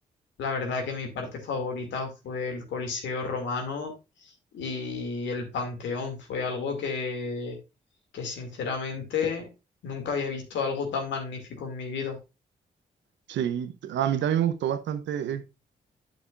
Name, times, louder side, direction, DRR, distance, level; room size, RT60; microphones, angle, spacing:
voice 1, 0.4-3.9 4.5-7.6 8.1-9.5 9.8-12.2, left 4 dB, 75° left, 2.4 m, -31 dB
voice 2, 13.3-15.4, right 10 dB, 75° right, 0.8 m, -27 dB
9.3 x 7.3 x 2.5 m
hypercardioid pair, 40°, 19 cm